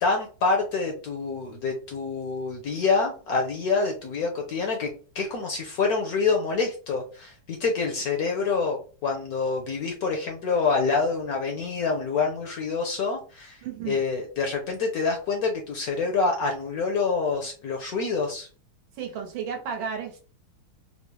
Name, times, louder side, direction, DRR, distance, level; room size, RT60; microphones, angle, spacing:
voice 1, 0.0-4.9 5.1-13.6 13.9-18.5, left 4 dB, 65° left, 2 dB, 0.9 m, -26 dB
voice 2, 13.6-14.0 19.0-20.2, right 7 dB, 80° right, 4 dB, 1.6 m, -33 dB
4.2 x 2.0 x 3.0 m, 0.38 s
omnidirectional pair, 2.2 m